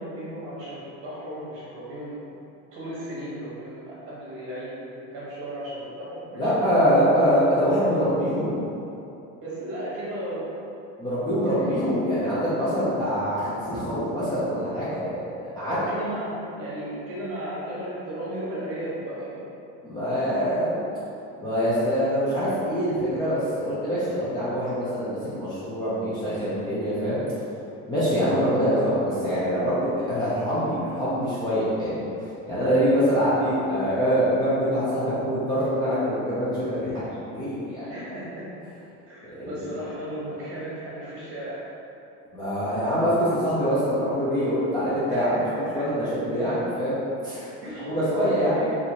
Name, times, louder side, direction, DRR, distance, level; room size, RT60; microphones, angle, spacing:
voice 1, 0.0-2.2 2.7-6.5 9.4-10.5 11.4-11.7 15.6-19.5 37.9-38.5 39.1-41.6 45.1-46.1 47.6-47.9 48.4-48.8, right 1 dB, 40° right, -8 dB, 1.3 m, -35 dB
voice 2, 6.3-8.6 11.0-15.8 19.8-20.8 21.4-27.2 27.9-32.1 32.5-37.9 39.3-39.7 42.3-47.5 47.8-48.5, equal, 15° left, -12 dB, 0.4 m, -24 dB
4.4 x 2.6 x 2.8 m, 2.8 s
cardioid pair, 175°, 33 cm